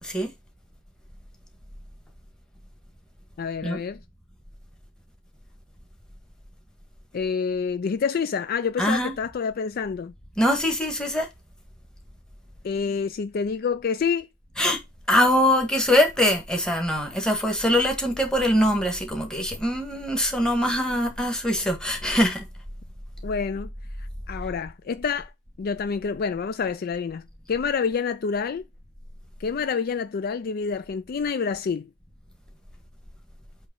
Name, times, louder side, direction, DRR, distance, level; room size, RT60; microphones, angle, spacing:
voice 1, 3.4-4.0 7.1-10.1 12.6-14.3 23.2-23.7 24.0-25.3 25.6-28.6 29.4-31.9, left 5 dB, 50° left, 0.4 m, -27 dB
voice 2, 8.8-9.1 10.4-11.3 14.6-14.8 15.1-22.5, left 1 dB, 5° left, 1.5 m, -23 dB
7.9 x 3.2 x 5.3 m
head